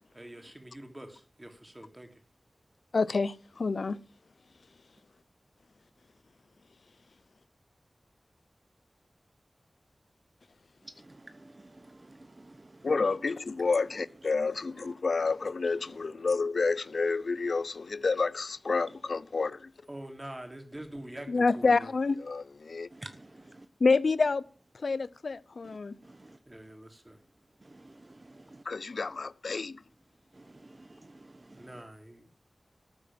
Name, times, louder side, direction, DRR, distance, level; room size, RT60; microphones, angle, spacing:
voice 1, 0.1-2.2 19.9-21.9 26.5-27.2 31.5-32.3, right 1 dB, 25° right, 3.5 m, -45 dB
voice 2, 2.9-4.0 12.8-19.7 21.3-22.9 23.8-24.4 24.8-25.9 28.7-29.8, left 4 dB, 80° left, 0.6 m, -28 dB
voice 3, 10.8-13.2 13.6-13.7 14.8-14.9 15.6-15.9 22.9-23.7 25.6-25.8 26.0-26.4 27.6-28.6 30.3-31.8, right 2 dB, 40° right, 1.1 m, -50 dB
13.5 x 8.6 x 7.5 m
wide cardioid pair, 50°, 0 cm